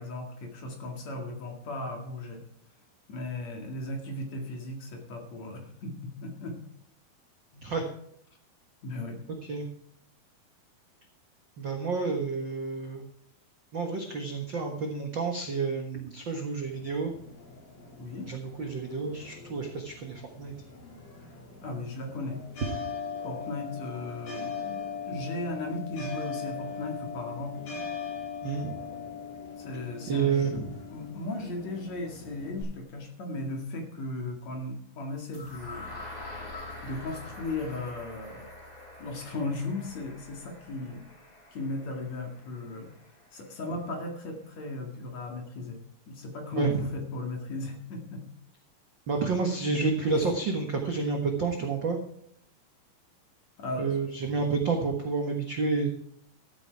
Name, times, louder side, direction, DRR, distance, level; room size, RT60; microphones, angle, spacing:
voice 1, 0.0-2.4 3.1-6.6 7.5-7.6 8.8-9.2 18.0-18.3 21.6-22.4 23.2-27.6 29.6-30.6 30.9-36.0 36.8-38.5 39.0-41.0 41.5-42.9 43.3-45.8 46.1-48.2 50.2-50.3 53.6-54.0, left 2 dB, 50° left, 3 dB, 3.1 m, -36 dB
voice 2, 11.6-13.0 13.7-17.1 18.3-20.5 28.4-28.8 30.1-30.8 46.6-46.8 49.1-52.0 53.8-55.9, right 4 dB, 65° right, 3 dB, 1.1 m, -29 dB
sound 1, 16.6-32.6, left 5 dB, 70° left, 6.9 m, -40 dB
sound 2, 35.3-43.3, left 2 dB, 10° left, 2.7 m, -45 dB
13.5 x 9.4 x 4.7 m, 0.71 s
omnidirectional pair, 4.4 m